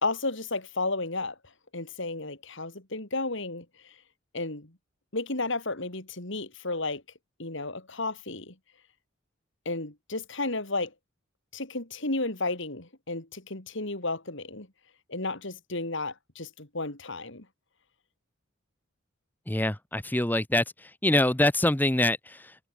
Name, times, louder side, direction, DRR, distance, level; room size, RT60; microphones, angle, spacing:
voice 1, 0.0-1.4 1.7-4.0 4.3-4.8 5.1-7.0 7.4-8.6 9.7-10.9 11.5-14.7 15.1-17.5, left 2 dB, 60° left, 3.6 m, -33 dB
voice 2, 19.5-22.6, left 1 dB, 10° left, 0.9 m, -25 dB
head